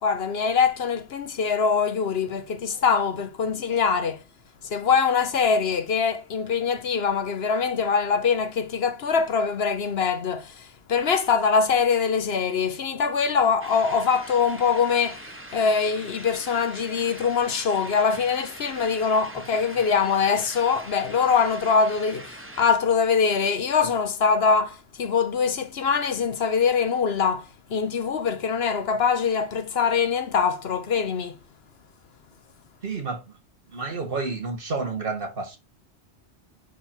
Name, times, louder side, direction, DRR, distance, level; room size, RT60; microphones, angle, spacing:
voice 1, 0.0-4.2 4.6-31.4, left 6 dB, 65° left, 1.1 m, -23 dB
sound 1, 13.6-22.7, right 1 dB, 10° right, 1.0 m, -42 dB
voice 2, 32.8-33.3 33.7-35.6, right 4 dB, 55° right, 1.8 m, -30 dB
9.8 x 3.6 x 4.5 m
omnidirectional pair, 1.2 m